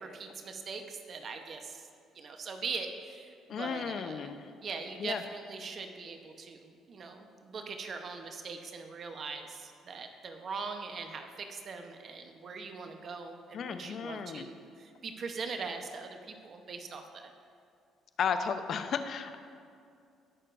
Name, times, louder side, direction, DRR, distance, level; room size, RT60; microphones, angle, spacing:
voice 1, 0.0-1.8 2.1-4.3 4.6-17.3, right 4 dB, 50° right, 5 dB, 0.9 m, -41 dB
voice 2, 3.5-4.5 5.0-5.2 13.5-14.5 18.2-19.4, left 6 dB, 60° left, 9 dB, 0.7 m, -34 dB
18.5 x 6.5 x 2.6 m, 2.4 s
supercardioid pair, 65°, 0 cm